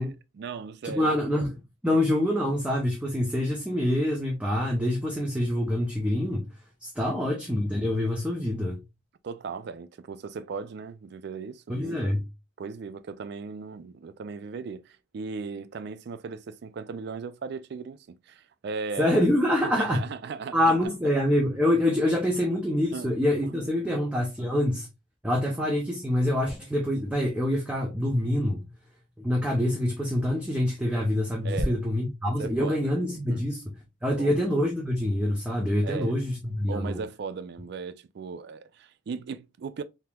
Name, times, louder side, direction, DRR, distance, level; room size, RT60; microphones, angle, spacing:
voice 1, 0.0-1.2 1.9-2.0 7.1-7.2 9.2-12.1 12.6-19.2 19.6-20.9 22.4-22.5 22.9-23.1 23.5-23.6 23.9-24.0 31.4-31.8 32.4-32.9 33.3-33.4 34.2-34.4 35.8-36.2 36.7-39.8, right 5 dB, 55° right, 0.3 m, -37 dB
voice 2, 0.8-6.5 6.8-8.8 11.7-12.2 19.0-20.0 20.5-24.9 25.2-28.7 29.2-33.7 34.0-37.0, left 1 dB, 5° right, 0.5 m, -26 dB
3.6 x 2.9 x 2.3 m
head